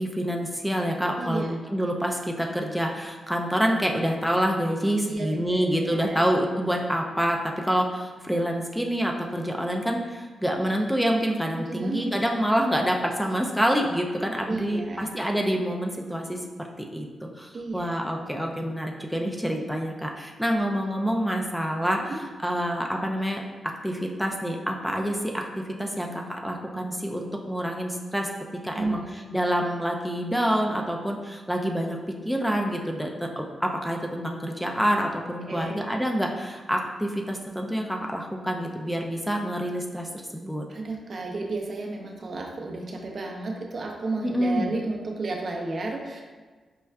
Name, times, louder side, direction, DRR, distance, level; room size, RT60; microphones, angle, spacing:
voice 1, 0.0-16.4 16.9-22.0 22.4-23.4 23.8-28.3 28.6-32.0 32.3-40.6 44.2-44.7, equal, ahead, 1 dB, 0.4 m, -27 dB
voice 2, 1.2-1.5 5.1-6.2 11.5-12.0 12.3-12.5 14.5-15.0 17.5-17.9 22.1-22.2 28.7-29.4 35.5-35.8 40.7-46.2, right 3 dB, 55° right, 1 dB, 0.5 m, -33 dB
5.3 x 2.3 x 2.2 m, 1.4 s
cardioid pair, 80°, 0 cm